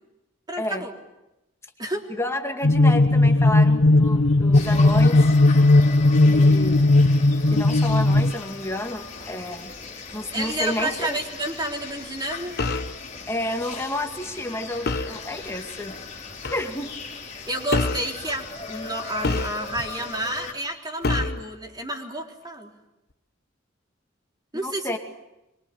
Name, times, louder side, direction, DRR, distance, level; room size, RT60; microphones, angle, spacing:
voice 1, 0.5-0.9 1.8-2.1 10.3-12.5 17.4-22.7 24.5-24.9, right 1 dB, 20° right, 1 dB, 3.8 m, -30 dB
voice 2, 2.1-5.4 6.2-6.8 7.5-9.7 10.1-11.2 13.3-15.9 16.5-16.9 24.6-25.0, left 1 dB, 15° left, 4 dB, 2.4 m, -30 dB
sound 1, 2.6-8.3, left 2 dB, 90° left, 0.9 m, -17 dB
sound 2, 4.5-20.5, left 4 dB, 35° left, 3.5 m, -38 dB
sound 3, 12.6-13.0 14.9-15.2 16.4-16.7 17.7-18.1 19.2-19.9 21.0-21.5, left 3 dB, 55° left, 1.1 m, -26 dB
25.0 x 23.0 x 9.0 m, 0.94 s
head